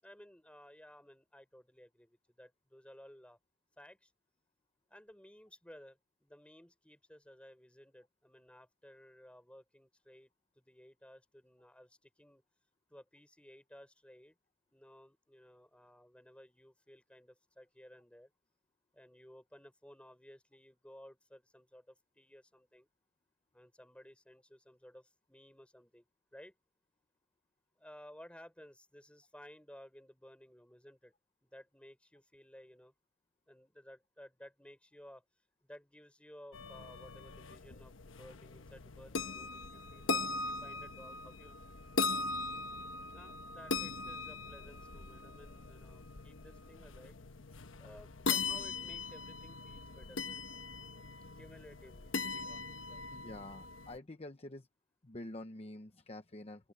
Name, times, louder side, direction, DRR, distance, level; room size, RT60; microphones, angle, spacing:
voice 1, 0.0-3.4 3.8-4.1 4.9-12.4 12.9-14.4 14.7-18.3 18.9-22.9 23.5-26.5 27.8-31.1 31.4-32.9 33.5-35.2 35.6-41.8 43.1-47.2 47.8-50.5 51.4-53.1, equal, 5° left, 4.0 m, -57 dB
sound 1, 36.5-54.0, left 4 dB, 85° left, 1.1 m, -40 dB
voice 2, 53.1-54.7 55.0-56.7, left 1 dB, 30° left, 0.9 m, -47 dB
open air
head